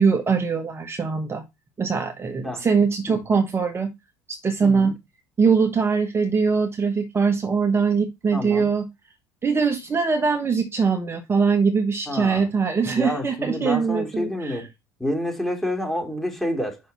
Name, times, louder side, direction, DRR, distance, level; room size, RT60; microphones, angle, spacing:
voice 1, 0.0-1.4 1.8-3.9 4.3-5.0 5.4-8.9 9.4-14.6, right 5 dB, 25° right, 1.1 m, -22 dB
voice 2, 4.6-4.9 8.3-8.7 12.1-12.5 12.9-14.7 15.0-16.8, left 1 dB, 5° left, 2.8 m, -28 dB
6.3 x 5.7 x 4.1 m
hypercardioid pair, 75°, 9 cm